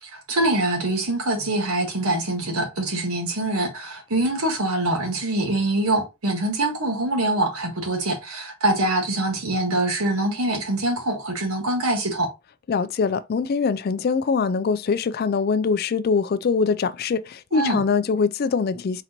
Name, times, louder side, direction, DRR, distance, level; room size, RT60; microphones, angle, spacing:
voice 1, 0.0-12.3 17.5-17.8, right 2 dB, 75° right, 1.5 m, -24 dB
voice 2, 12.7-19.0, left 5 dB, 45° left, 0.3 m, -23 dB
4.3 x 3.9 x 2.9 m
head